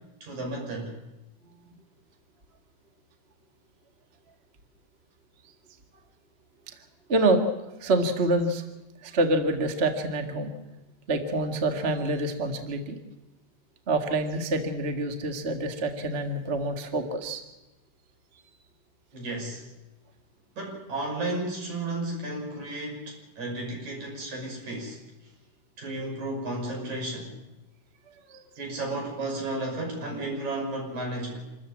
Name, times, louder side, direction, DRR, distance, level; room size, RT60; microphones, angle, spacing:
voice 1, 0.2-0.9 19.1-19.6 20.6-25.0 25.8-27.3 28.6-31.4, right 2 dB, 75° right, 1 dB, 7.4 m, -33 dB
voice 2, 7.1-7.4 7.8-8.6 9.0-10.6 11.1-13.0 13.9-17.4 28.3-28.4, right 2 dB, 25° right, 5 dB, 1.6 m, -26 dB
27.0 x 14.0 x 8.6 m, 1.0 s
omnidirectional pair, 3.3 m